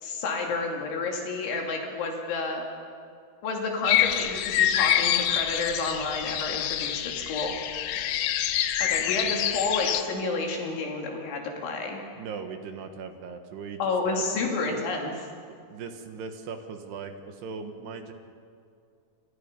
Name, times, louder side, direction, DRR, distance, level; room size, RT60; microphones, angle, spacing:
voice 1, 0.0-2.7 3.4-7.6 8.8-12.0 13.8-15.3, left 3 dB, 65° left, 1 dB, 4.9 m, -30 dB
sound 1, 3.9-10.0, left 11 dB, 85° left, 2.2 m, -26 dB
voice 2, 7.9-8.3 12.2-13.8 14.1-14.3 14.6-14.7 15.5-18.1, right 5 dB, 65° right, 6 dB, 3.0 m, -39 dB
28.5 x 26.0 x 5.4 m, 2.3 s
omnidirectional pair, 5.9 m